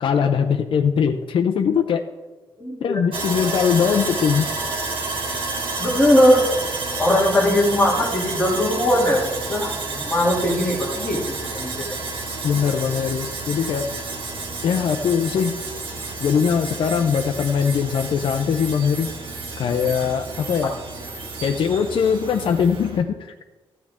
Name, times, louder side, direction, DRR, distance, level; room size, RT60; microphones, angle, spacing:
voice 1, 0.0-2.0 2.8-4.5 12.4-13.9 14.6-15.5 16.2-19.1 19.6-20.7 21.4-23.3, left 7 dB, 65° left, 5 dB, 0.6 m, -21 dB
voice 2, 2.6-3.0 5.8-6.5 7.0-11.9, left 1 dB, 10° left, -5 dB, 2.9 m, -20 dB
Sawing, 3.1-23.0, right 3 dB, 65° right, 1.8 m, -30 dB
14.5 x 9.4 x 3.7 m, 1.2 s
wide cardioid pair, 180°, 10 cm